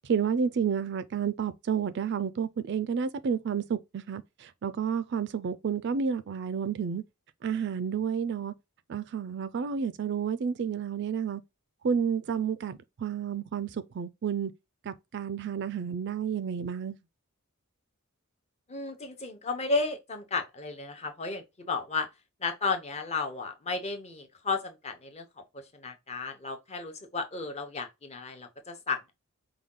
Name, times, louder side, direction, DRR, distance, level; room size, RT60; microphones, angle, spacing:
voice 1, 0.0-7.0 7.4-8.5 8.9-11.4 11.8-14.5 14.8-17.0, right 7 dB, 50° right, 0.4 m, -30 dB
voice 2, 18.7-22.1 22.4-25.2 25.5-29.1, left 4 dB, 30° left, 0.8 m, -33 dB
5.0 x 2.3 x 3.7 m
head